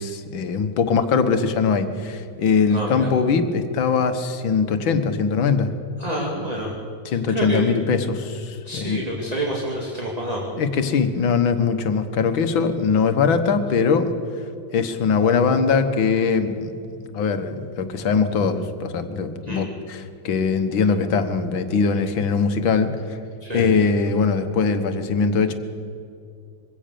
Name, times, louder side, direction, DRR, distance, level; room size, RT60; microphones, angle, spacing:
voice 1, 0.0-5.7 7.1-9.0 10.6-14.1 14.7-16.7 17.1-23.0 23.5-25.5, left 5 dB, 85° left, 9 dB, 2.1 m, -21 dB
voice 2, 2.7-3.1 6.0-6.7 7.3-7.7 8.6-10.4 19.5-19.7 23.4-23.7, right 1 dB, 20° right, -2 dB, 2.4 m, -28 dB
23.0 x 16.5 x 6.8 m, 2.5 s
omnidirectional pair, 2.1 m